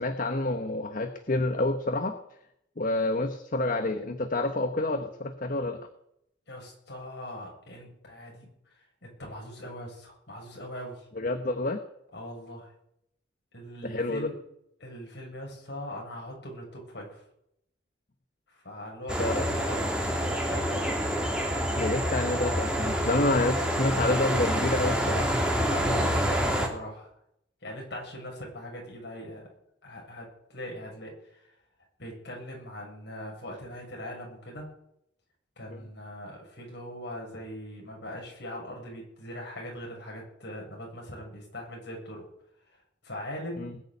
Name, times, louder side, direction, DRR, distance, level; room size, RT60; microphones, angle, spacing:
voice 1, 0.0-2.2 2.8-5.8 11.1-11.8 13.8-14.3 19.2-19.4 21.7-25.3 35.7-35.8 43.6-43.8, left 2 dB, 45° left, 7 dB, 1.1 m, -28 dB
voice 2, 6.5-8.5 9.0-11.1 12.1-12.7 13.5-14.4 14.8-17.2 18.6-21.0 25.6-27.1 27.6-29.5 29.8-31.1 32.0-34.7 35.6-42.2 43.0-43.7, equal, 65° left, -1 dB, 7.4 m, -40 dB
sound 1, 19.1-26.7, equal, 5° right, 2.9 m, -27 dB
20.5 x 7.0 x 9.6 m, 0.77 s
head